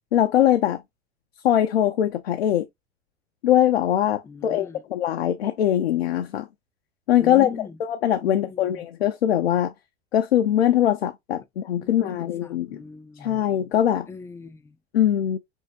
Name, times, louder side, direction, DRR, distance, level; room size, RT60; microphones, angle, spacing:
voice 1, 0.1-0.8 1.4-2.7 3.4-6.5 7.1-7.5 7.8-9.7 10.1-12.8 13.2-14.1 14.9-15.4, left 11 dB, 70° left, 0.5 m, -21 dB
voice 2, 4.2-4.8 7.2-7.8 8.2-8.8 11.8-13.4 14.1-14.8, left 5 dB, 10° left, 0.4 m, -40 dB
5.4 x 2.7 x 2.2 m
figure-of-eight pair, 80°, 32 cm